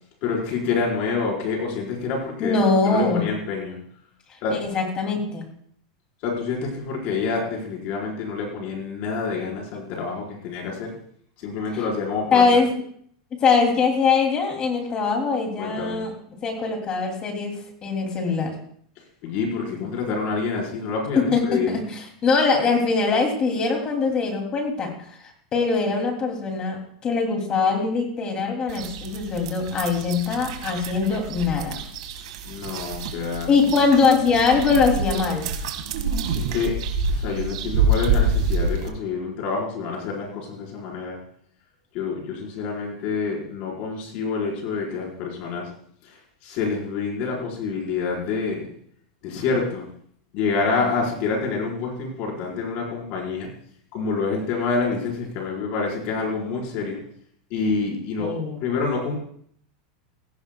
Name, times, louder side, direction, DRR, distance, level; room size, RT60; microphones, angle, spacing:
voice 1, 0.2-2.6 2.9-3.8 4.4-4.6 6.2-10.9 11.4-12.4 15.6-16.0 19.2-21.8 32.4-33.5 36.3-36.8 37.0-41.2 41.9-45.7 46.0-48.7 49.2-49.9 50.3-53.5 53.9-57.0 57.5-59.2, left 4 dB, 45° left, -1 dB, 4.4 m, -27 dB
voice 2, 2.4-3.2 4.5-5.4 12.3-12.7 13.4-16.1 16.4-18.5 21.2-24.9 25.5-31.8 33.5-35.5 58.2-58.6, left 4 dB, 25° left, 2 dB, 2.6 m, -22 dB
sound 1, 28.7-38.9, right 3 dB, 70° right, 1.7 m, -27 dB
16.5 x 15.0 x 2.3 m, 0.63 s
supercardioid pair, 155°, 4 cm